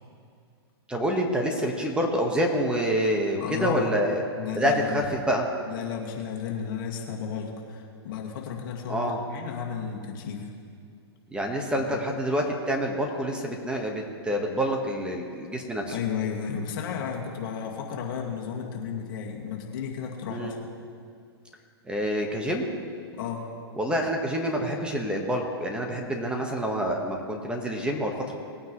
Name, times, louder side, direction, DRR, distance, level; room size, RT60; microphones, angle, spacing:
voice 1, 0.9-4.2 4.5-5.5 8.9-9.2 11.3-16.0 20.3-20.5 21.8-22.8 23.8-28.3, equal, 5° right, 1 dB, 1.4 m, -27 dB
voice 2, 3.4-3.9 4.4-5.1 5.7-10.5 11.8-11.9 15.9-20.6 23.1-23.5, left 7 dB, 55° left, -1 dB, 2.3 m, -33 dB
20.0 x 9.2 x 3.2 m, 2.3 s
hypercardioid pair, 120°, 14 cm